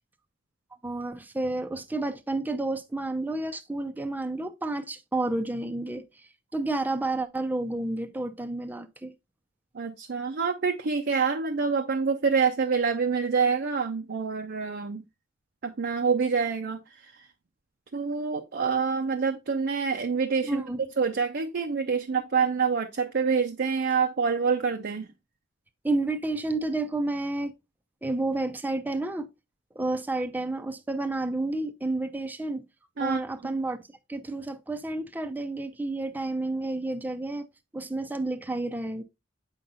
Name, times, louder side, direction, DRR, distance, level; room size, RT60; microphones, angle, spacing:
voice 1, 0.8-6.0 6.5-9.1 20.4-20.8 25.8-27.5 28.0-29.3 29.8-32.6 33.0-33.8 34.1-37.5 37.7-39.0, right 2 dB, 10° right, 0.5 m, -30 dB
voice 2, 9.7-15.0 15.6-17.3 17.9-20.6 21.0-25.1 33.0-33.5, right 5 dB, 55° right, 0.5 m, -27 dB
7.6 x 5.6 x 2.5 m
head